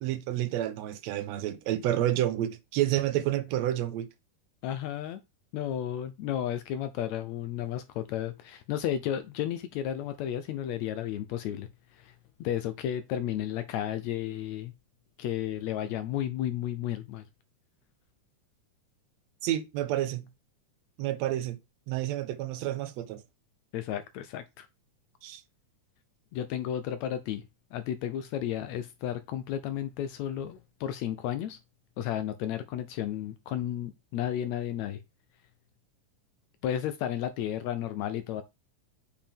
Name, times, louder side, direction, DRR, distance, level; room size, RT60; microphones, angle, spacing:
voice 1, 0.0-4.1 19.4-20.3 21.0-21.6 21.9-23.2 25.2-25.4, right 13 dB, 75° right, 1.7 m, -29 dB
voice 2, 4.6-5.2 5.5-12.2 12.4-14.7 15.2-17.2 23.7-24.7 26.3-27.4 27.7-31.6 32.0-35.0 36.6-38.4, left 11 dB, 75° left, 1.7 m, -33 dB
7.4 x 4.6 x 3.5 m
omnidirectional pair, 3.7 m